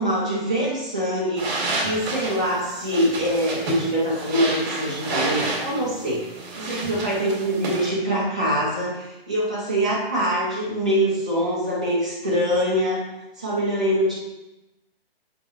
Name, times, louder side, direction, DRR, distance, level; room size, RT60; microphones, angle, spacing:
voice 1, 0.0-1.5 1.8-13.0 13.4-14.1, equal, 10° right, -7 dB, 0.3 m, -24 dB
sound 1, 1.4-7.9, right 2 dB, 45° right, 1.9 m, -30 dB
7.4 x 5.2 x 3.0 m, 0.98 s
hypercardioid pair, 155°, 31 cm